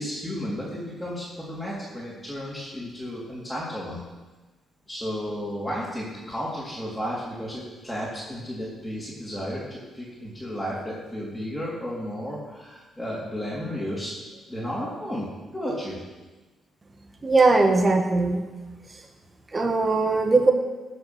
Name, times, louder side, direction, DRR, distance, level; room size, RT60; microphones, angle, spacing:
voice 1, 0.0-4.0 4.9-14.1 14.5-15.3 15.5-16.0, equal, 5° left, -8 dB, 3.5 m, -33 dB
voice 2, 17.2-18.4 19.5-20.5, right 3 dB, 25° right, 3 dB, 1.6 m, -19 dB
15.5 x 6.6 x 6.3 m, 1.2 s
cardioid pair, 90°, 0 cm